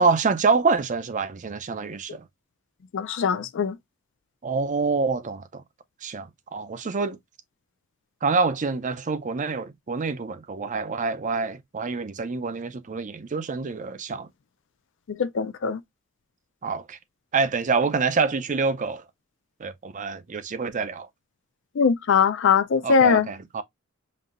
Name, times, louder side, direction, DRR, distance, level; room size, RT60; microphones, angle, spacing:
voice 1, 0.0-2.2 4.4-5.6 6.0-7.2 8.2-14.3 16.6-17.0 17.3-19.0 19.6-21.1 22.8-23.6, right 4 dB, 40° right, 0.5 m, -26 dB
voice 2, 2.9-3.8 15.1-15.8 21.8-23.3, left 6 dB, 65° left, 0.4 m, -21 dB
5.3 x 2.7 x 2.5 m
head